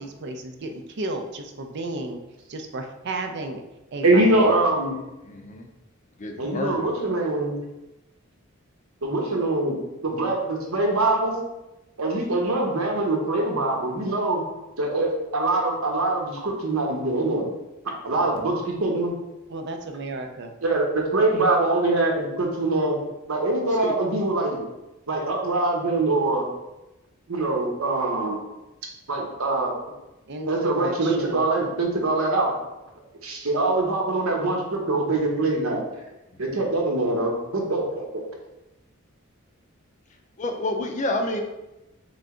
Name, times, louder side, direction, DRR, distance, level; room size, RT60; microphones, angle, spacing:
voice 1, 0.0-2.2 2.5-3.6 3.9-4.3 19.5-20.6 30.3-31.4, right 2 dB, 55° right, 5 dB, 0.5 m, -33 dB
voice 2, 4.0-5.0 6.4-7.5 9.0-9.8 10.0-11.3 12.0-14.4 14.8-17.5 18.0-19.1 20.6-23.0 23.3-24.6 25.1-26.5 27.3-28.4 29.1-29.7 30.5-32.5 33.2-35.8 36.4-38.2, right 2 dB, 80° right, 0 dB, 1.0 m, -23 dB
voice 3, 5.3-5.7 6.2-6.9 23.8-23.9 40.4-41.4, left 2 dB, 35° left, 4 dB, 0.5 m, -28 dB
3.8 x 3.3 x 3.7 m, 0.97 s
head